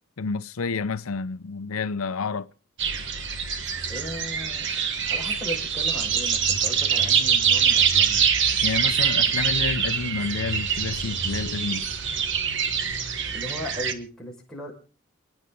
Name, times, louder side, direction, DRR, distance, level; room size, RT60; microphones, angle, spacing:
voice 1, 0.2-2.5 8.6-11.9, left 5 dB, 80° left, 0.6 m, -29 dB
sound 1, 2.8-13.9, right 7 dB, 60° right, 1.5 m, -24 dB
voice 2, 3.9-4.8 5.1-8.2 13.3-14.7, left 1 dB, 5° left, 5.5 m, -37 dB
29.0 x 9.8 x 3.9 m
head